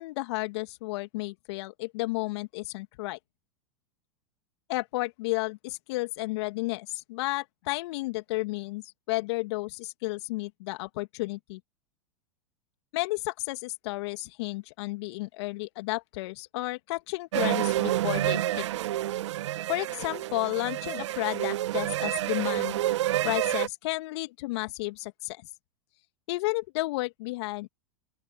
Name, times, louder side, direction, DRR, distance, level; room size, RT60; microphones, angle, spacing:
voice 1, 0.0-3.2 4.7-11.6 12.9-18.6 19.7-22.8 23.2-25.4 26.3-27.7, left 21 dB, 60° left, 1.9 m, -32 dB
sound 1, 17.3-23.7, right 14 dB, 65° right, 0.9 m, -29 dB
open air
hypercardioid pair, 90°, 16 cm